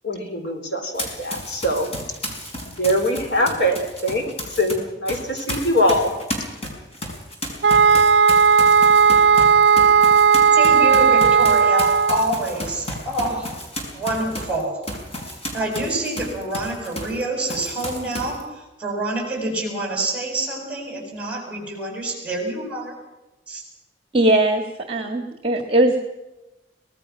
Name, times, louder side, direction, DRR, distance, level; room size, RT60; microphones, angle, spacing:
voice 1, 0.0-1.9 2.6-6.1, equal, 70° left, 5 dB, 4.3 m, -22 dB
Run, 0.9-4.7 5.1-17.2 17.5-18.4, left 1 dB, 35° left, 5.5 m, -32 dB
sound 1, 7.6-12.3, right 6 dB, 75° right, 0.6 m, -15 dB
voice 2, 10.5-13.6 13.9-14.8 15.5-23.0 23.5-23.6, right 2 dB, 5° right, 1 dB, 7.4 m, -27 dB
voice 3, 24.1-26.0, right 1 dB, 35° right, 6 dB, 1.7 m, -19 dB
24.5 x 19.0 x 6.1 m, 1.0 s
head